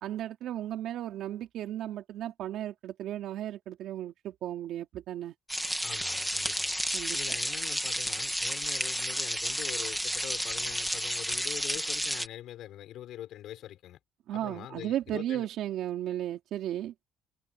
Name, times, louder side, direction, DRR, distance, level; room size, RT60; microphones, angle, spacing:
voice 1, 0.0-5.3 6.9-7.2 14.3-16.9, right 12 dB, 55° right, 3.3 m, -35 dB
sound 1, 5.5-12.3, equal, ahead, 1.9 m, -31 dB
voice 2, 5.8-6.7 7.1-14.0 14.3-15.5, left 12 dB, 55° left, 5.7 m, -44 dB
cardioid pair, 180°, 0 cm